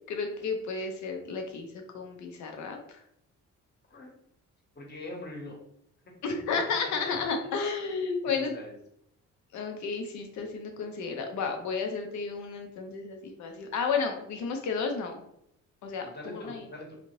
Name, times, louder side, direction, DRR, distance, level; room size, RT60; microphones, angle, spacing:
voice 1, 0.1-3.0 6.2-8.6 9.5-15.2 15.8-16.7, left 5 dB, 70° left, 4 dB, 0.7 m, -32 dB
voice 2, 4.7-5.6 6.0-6.1 6.8-7.5 8.3-8.8 16.0-17.0, left 2 dB, 35° left, -1 dB, 1.1 m, -43 dB
2.8 x 2.4 x 3.1 m, 0.75 s
cardioid pair, 90°, 30 cm